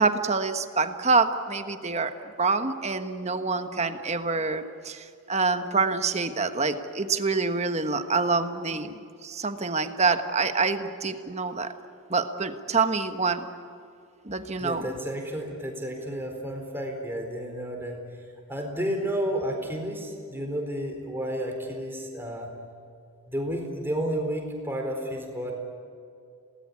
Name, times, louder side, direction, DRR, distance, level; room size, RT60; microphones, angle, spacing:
voice 1, 0.0-11.7 12.1-13.5 14.2-14.9, right 4 dB, 30° right, 8 dB, 1.3 m, -26 dB
voice 2, 14.6-18.0 18.5-22.5 23.3-25.5, equal, 10° right, 2 dB, 4.2 m, -31 dB
28.5 x 19.0 x 9.8 m, 2.5 s
head